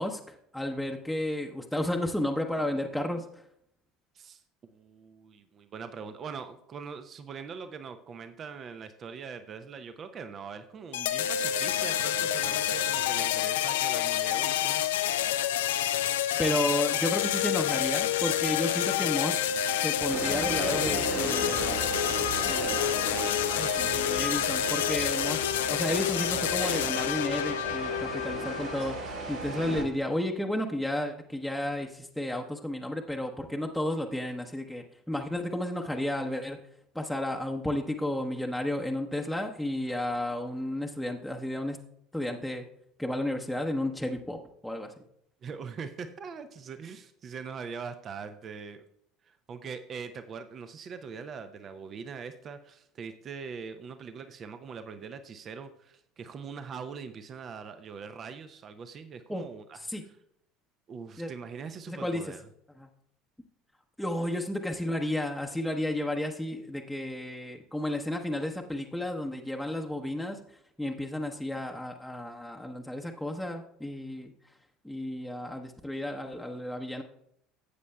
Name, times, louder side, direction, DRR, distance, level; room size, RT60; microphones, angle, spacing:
voice 1, 0.0-3.4 16.4-19.4 19.8-21.8 22.4-36.6 36.9-41.8 42.1-42.7 43.0-44.4 44.6-44.9 59.3-59.5 59.7-60.0 61.2-61.3 61.9-62.2 62.8-62.9 64.0-70.4 70.8-74.3 74.8-77.0, left 1 dB, ahead, 1 dB, 0.8 m, -32 dB
voice 2, 4.1-14.8 45.4-48.8 49.2-60.2 60.9-62.5, right 6 dB, 40° right, 10 dB, 0.6 m, -42 dB
sound 1, 10.9-28.9, left 10 dB, 70° left, 0.4 m, -28 dB
sound 2, 20.1-29.8, right 3 dB, 65° right, 2.6 m, -36 dB
14.5 x 8.3 x 2.3 m, 0.71 s
figure-of-eight pair, 65°, 0 cm